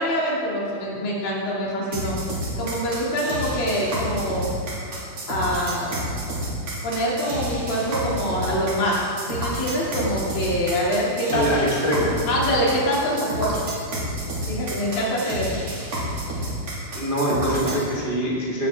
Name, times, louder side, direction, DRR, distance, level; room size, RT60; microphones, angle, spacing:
voice 1, 0.0-2.2 2.6-4.5 5.3-6.0 6.8-11.5 12.3-13.5 14.5-15.6, equal, 65° left, -5 dB, 4.2 m, -25 dB
sound 1, 1.9-17.8, right 1 dB, 45° right, 3.5 m, -30 dB
voice 2, 11.3-12.2 16.9-18.7, equal, 75° right, -5 dB, 0.4 m, -23 dB
17.5 x 9.8 x 3.6 m, 2.4 s
omnidirectional pair, 4.4 m